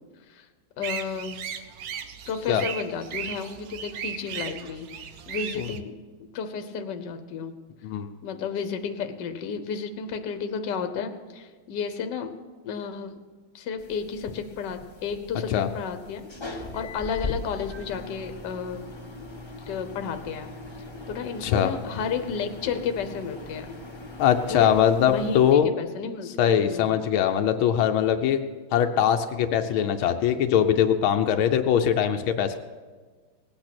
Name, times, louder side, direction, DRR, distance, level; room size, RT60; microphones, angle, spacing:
voice 1, 0.8-1.4 2.3-7.5 8.2-12.3 12.6-13.2 13.5-18.8 19.7-20.5 21.1-23.7 24.5-24.7 25.0-27.1, left 6 dB, 60° left, 8 dB, 1.5 m, -32 dB
sound 1, 0.8-5.8, right 8 dB, 65° right, 1.0 m, -36 dB
sound 2, 13.8-25.5, left 2 dB, 15° left, 1.0 m, -40 dB
voice 2, 24.2-25.7 26.4-28.4 28.7-32.6, left 9 dB, 85° left, 7 dB, 1.5 m, -22 dB
18.5 x 8.8 x 6.0 m, 1.4 s
omnidirectional pair, 2.2 m